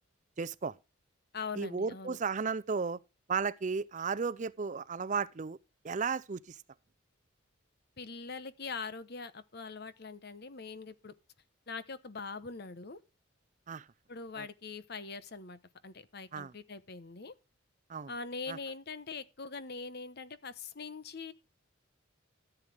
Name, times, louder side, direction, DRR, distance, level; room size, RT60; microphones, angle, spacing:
voice 1, 0.4-0.7 1.6-3.0 3.3-5.6 5.8-6.6 13.7-13.8 14.4-14.5 16.3-16.5 17.9-18.1 18.5-18.6, right 5 dB, 40° right, 0.5 m, -34 dB
voice 2, 1.3-2.2 8.0-11.1 11.7-13.0 14.1-17.3 18.1-21.3, left 4 dB, 55° left, 1.0 m, -42 dB
14.0 x 8.0 x 3.4 m
head